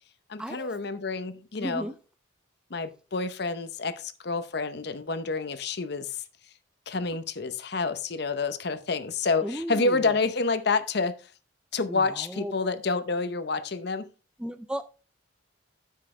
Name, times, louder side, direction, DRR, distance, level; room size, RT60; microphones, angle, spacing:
voice 1, 0.3-1.9 2.7-6.2 6.9-11.1 11.7-14.0, left 4 dB, 55° left, 0.8 m, -28 dB
voice 2, 1.6-2.0 9.4-10.1 11.9-12.5 14.4-14.8, equal, 5° right, 0.4 m, -34 dB
9.8 x 7.5 x 3.2 m
head